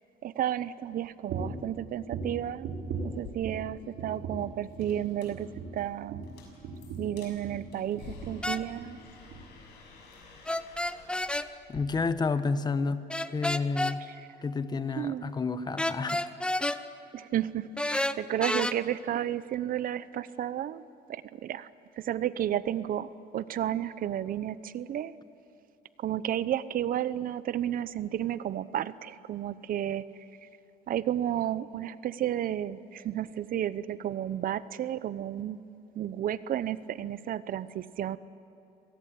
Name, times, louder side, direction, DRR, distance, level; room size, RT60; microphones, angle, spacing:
voice 1, 0.2-2.7 3.0-6.3 7.0-9.0 14.1-14.3 15.0-15.2 17.1-20.8 21.1-21.7 22.0-25.1 26.0-30.0 30.9-35.6 35.9-38.2, right 11 dB, 55° right, 16 dB, 0.8 m, -32 dB
sound 1, 1.3-1.7 2.1-3.7 4.0-4.5 4.8-5.0 5.3-7.7 8.0-8.4 8.7-9.0 9.3-9.4, right 4 dB, 80° right, 5.0 m, -38 dB
sound 2, 3.1-11.8, left 5 dB, 85° left, 6.5 m, -51 dB
sound 3, 8.4-8.6 10.5-11.5 13.1-14.0 15.8-16.8 17.8-18.7, left 1 dB, 5° left, 0.7 m, -29 dB
voice 2, 11.7-13.1 13.3-14.0 14.4-16.2, left 4 dB, 25° left, 12 dB, 1.1 m, -30 dB
26.5 x 18.5 x 8.7 m, 2.8 s
cardioid pair, 110°, 17 cm